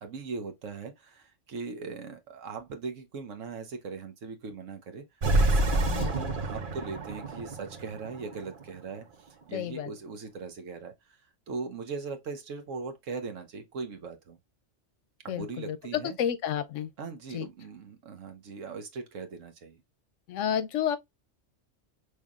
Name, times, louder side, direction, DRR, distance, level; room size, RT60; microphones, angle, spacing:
voice 1, 0.0-5.1 5.4-11.2 11.5-14.4 15.2-16.2 17.0-19.8, right 4 dB, 90° right, 1.3 m, -39 dB
sound 1, 5.2-8.6, right 2 dB, 45° right, 1.0 m, -27 dB
voice 2, 9.5-9.9 15.3-16.9 17.3-17.5 20.3-21.0, left 9 dB, 85° left, 1.0 m, -31 dB
5.4 x 3.3 x 2.4 m
omnidirectional pair, 1.3 m